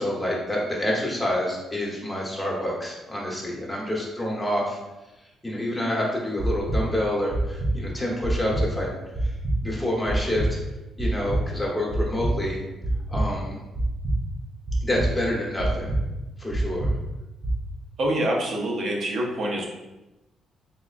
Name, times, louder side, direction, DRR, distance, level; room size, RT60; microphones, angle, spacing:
voice 1, 0.0-4.8 5.2-9.3 9.6-10.6 11.0-12.6 13.1-13.6 14.8-15.9 16.4-16.9, left 1 dB, 15° left, -3 dB, 1.1 m, -28 dB
sound 1, 6.4-6.8 7.3-7.7 8.2-8.6 9.1-9.6 10.1-10.5 11.0-11.4 11.9-12.3 12.8-13.2 13.7-14.2 14.7-15.1 15.6-16.0 16.5-16.9 17.4-17.5, right 1 dB, 25° right, 0.6 m, -24 dB
voice 2, 18.0-19.7, right 1 dB, 60° right, -1 dB, 0.8 m, -26 dB
3.6 x 3.5 x 2.5 m, 1.0 s
cardioid pair, 90°, 0 cm